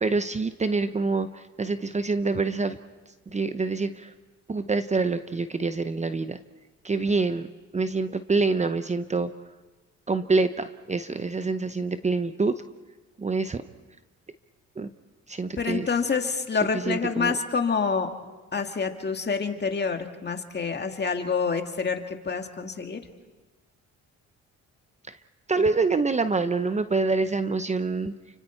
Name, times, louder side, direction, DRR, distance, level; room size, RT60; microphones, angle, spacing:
voice 1, 0.0-2.8 3.3-4.1 4.5-6.4 6.8-7.5 7.7-9.3 10.1-12.6 13.2-13.6 14.8-14.9 15.3-15.9 16.8-17.3 25.1-25.2 25.5-28.1, right 3 dB, 25° right, 10 dB, 0.8 m, -26 dB
voice 2, 15.6-18.1 18.5-23.0, left 5 dB, 35° left, 5 dB, 2.1 m, -27 dB
29.5 x 25.0 x 4.5 m, 1.2 s
cardioid pair, 90°, 30 cm